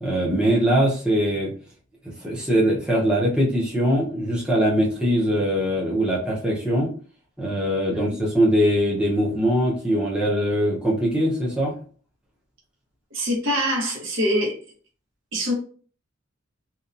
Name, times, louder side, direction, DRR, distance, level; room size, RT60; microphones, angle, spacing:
voice 1, 0.0-1.5 2.0-6.9 7.4-11.8, equal, 5° right, 0.6 m, -22 dB
voice 2, 13.1-14.6 15.3-15.5, equal, 70° right, 1.0 m, -24 dB
2.7 x 2.2 x 2.4 m
head